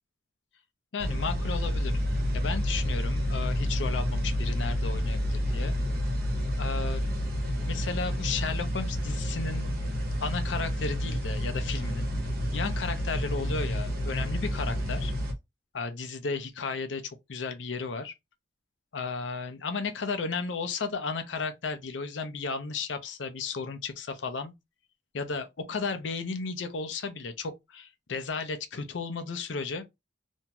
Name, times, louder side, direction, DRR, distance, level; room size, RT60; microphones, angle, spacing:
voice 1, 0.9-1.9 2.3-5.7 6.6-7.0 7.7-9.7 10.2-12.1 12.5-15.1 15.7-18.1 18.9-24.5 25.1-29.8, left 4 dB, 85° left, 0.6 m, -34 dB
sound 1, 1.0-15.3, equal, 55° right, 1.0 m, -29 dB
2.9 x 2.6 x 2.2 m
head